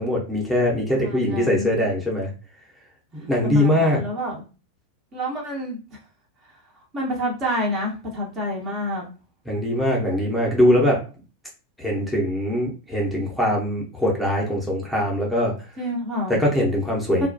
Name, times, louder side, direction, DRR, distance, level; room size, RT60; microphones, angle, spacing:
voice 1, 0.0-2.3 3.1-4.0 9.5-11.0 11.8-15.5 16.3-17.3, left 1 dB, ahead, -3 dB, 0.7 m, -22 dB
voice 2, 1.0-1.8 3.4-4.4 5.1-5.8 6.9-9.0 15.8-16.4 17.2-17.3, left 1 dB, 30° right, -1 dB, 0.8 m, -28 dB
2.2 x 2.2 x 2.6 m, 0.34 s
figure-of-eight pair, 90°, 0 cm